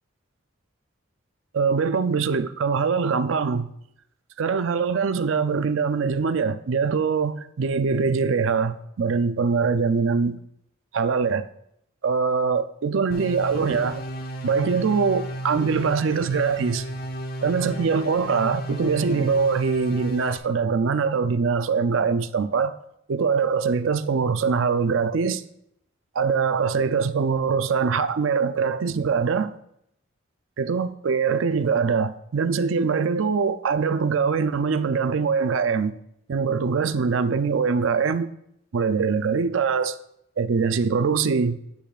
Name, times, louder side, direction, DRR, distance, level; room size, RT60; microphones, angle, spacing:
voice 1, 1.5-3.7 4.4-10.4 10.9-11.5 12.0-14.0 14.4-16.9 17.4-22.8 23.1-25.4 26.1-29.6 30.6-36.0 36.3-38.3 38.7-40.0 40.4-41.6, right 5 dB, 75° right, 0.5 m, -23 dB
sound 1, 13.1-20.4, equal, 45° left, 0.8 m, -33 dB
10.0 x 8.5 x 2.4 m
head